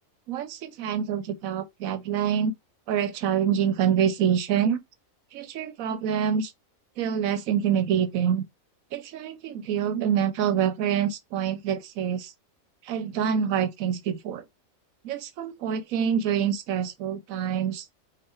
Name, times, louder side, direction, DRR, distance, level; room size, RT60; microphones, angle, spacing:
voice 1, 0.3-2.5 2.9-4.8 5.3-6.5 7.0-8.4 8.9-12.3 12.9-14.4 15.0-17.8, right 8 dB, 85° right, 1.1 m, -26 dB
5.0 x 2.4 x 2.9 m
omnidirectional pair, 1.4 m